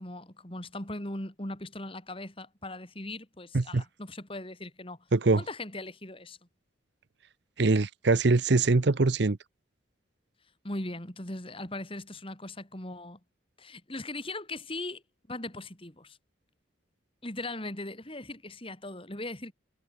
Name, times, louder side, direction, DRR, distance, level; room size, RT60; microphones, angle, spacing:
voice 1, 0.0-5.0 5.4-6.4 10.6-13.2 13.6-15.0 15.3-16.2 17.2-19.5, left 2 dB, 25° left, 3.4 m, -39 dB
voice 2, 5.1-5.4 7.6-9.4, right 3 dB, 60° right, 0.7 m, -23 dB
head